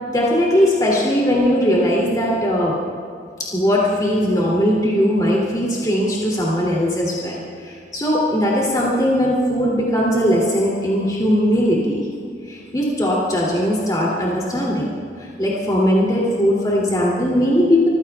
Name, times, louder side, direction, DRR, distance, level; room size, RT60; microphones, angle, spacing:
voice 1, 0.1-2.8 3.5-12.0 12.5-14.9 15.4-17.9, equal, 20° left, -5 dB, 2.7 m, -19 dB
28.0 x 15.5 x 2.4 m, 2.3 s
head